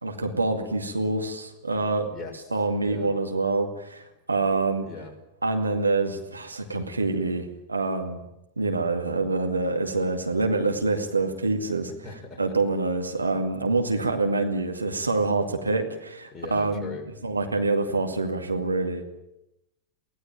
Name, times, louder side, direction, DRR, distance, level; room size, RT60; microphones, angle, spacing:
voice 1, 0.0-2.1 2.5-4.9 5.4-8.2 8.6-11.9 12.4-17.0 17.2-19.0, right 3 dB, 80° right, 4 dB, 2.2 m, -26 dB
voice 2, 2.1-2.5 2.8-3.1 4.8-5.2 12.0-12.5 16.3-17.1, left 4 dB, 10° left, 0 dB, 6.0 m, -39 dB
23.5 x 18.0 x 9.0 m, 0.87 s
figure-of-eight pair, 90°, 0 cm